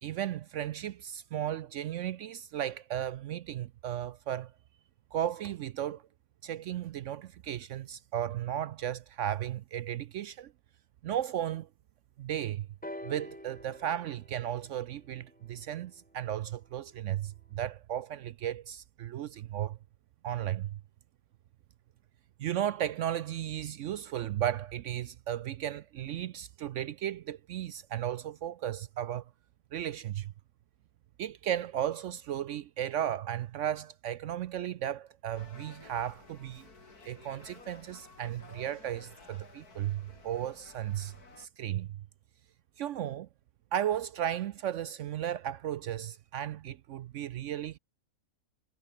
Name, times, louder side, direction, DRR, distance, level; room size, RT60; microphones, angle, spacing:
voice 1, 0.0-4.5 5.1-6.0 6.4-10.5 11.0-11.7 12.2-12.7 13.0-19.8 20.2-20.8 22.4-29.3 29.7-30.3 31.2-36.7 37.1-42.0 42.8-43.3 43.7-47.8, right 11 dB, 65° right, 0.8 m, -35 dB
sound 1, 12.8-16.7 17.6-17.7, left 1 dB, 5° left, 1.1 m, -48 dB
sound 2, 35.4-41.5, left 3 dB, 85° left, 4.2 m, -54 dB
omnidirectional pair, 1.6 m